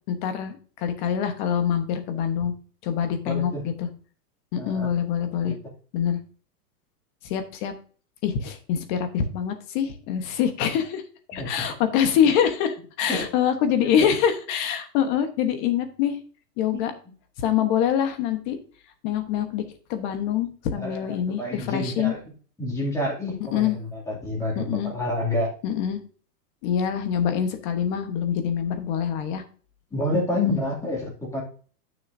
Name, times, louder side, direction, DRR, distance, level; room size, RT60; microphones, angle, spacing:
voice 1, 0.1-2.5 2.8-3.9 4.5-5.5 5.9-6.2 7.2-7.7 8.2-11.0 11.3-16.2 16.6-16.9 17.4-18.6 19.0-22.1 23.5-23.8 24.5-24.9 25.6-26.0 26.6-29.4 30.4-30.6, left 8 dB, 30° left, 8 dB, 1.2 m, -25 dB
voice 2, 3.3-3.6 4.5-4.9 5.4-5.5 11.3-11.7 13.1-13.3 14.0-14.1 16.7-16.9 20.7-22.2 22.6-25.5 29.9-31.4, left 1 dB, 5° left, -3 dB, 2.5 m, -28 dB
10.5 x 6.5 x 2.7 m, 0.41 s
hypercardioid pair, 155°, 48 cm